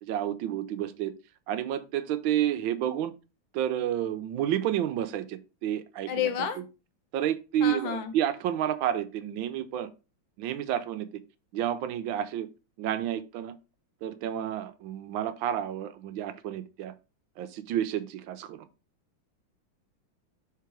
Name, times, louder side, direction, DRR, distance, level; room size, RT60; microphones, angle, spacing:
voice 1, 0.0-1.1 1.5-3.1 3.5-6.3 6.6-6.7 7.1-9.9 10.4-11.1 11.5-12.5 12.8-13.6 14.0-16.9 17.4-18.7, right 11 dB, 90° right, 1.4 m, -30 dB
voice 2, 6.1-6.6 7.6-8.1, left 8 dB, 75° left, 1.6 m, -30 dB
5.8 x 4.1 x 4.5 m
omnidirectional pair, 2.1 m